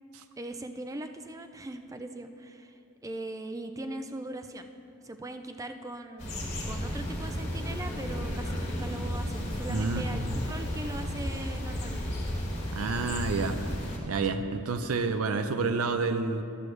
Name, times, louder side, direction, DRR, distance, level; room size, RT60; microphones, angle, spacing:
voice 1, 0.4-4.7 5.0-12.2, right 2 dB, 15° right, 7 dB, 0.3 m, -40 dB
sound 1, 6.2-14.0, equal, 30° left, 1.4 m, -33 dB
voice 2, 9.7-10.4 12.7-13.6 14.1-16.4, right 4 dB, 75° right, 8 dB, 0.5 m, -29 dB
12.0 x 7.7 x 3.2 m, 2.7 s
head